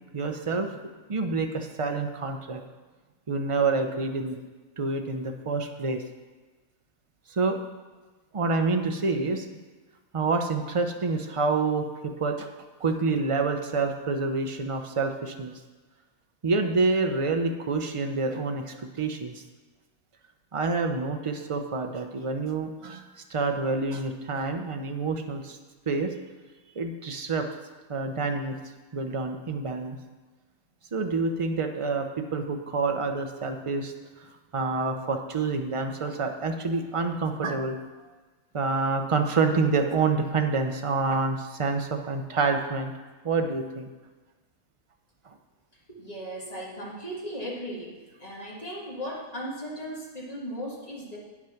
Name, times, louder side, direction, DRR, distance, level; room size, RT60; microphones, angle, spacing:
voice 1, 0.1-0.8 1.1-2.6 3.3-4.4 4.8-6.0 7.3-7.6 8.3-9.5 10.1-12.5 12.8-15.5 16.4-19.4 20.5-25.6 25.9-26.1 26.7-27.5 27.9-28.6 28.9-30.0 30.9-37.8 38.5-42.9 43.2-43.9 45.2-45.4, right 4 dB, 40° right, 5 dB, 0.4 m, -27 dB
voice 2, 45.9-51.2, equal, 25° left, -5 dB, 2.0 m, -37 dB
9.2 x 6.1 x 5.8 m, 1.3 s
omnidirectional pair, 1.5 m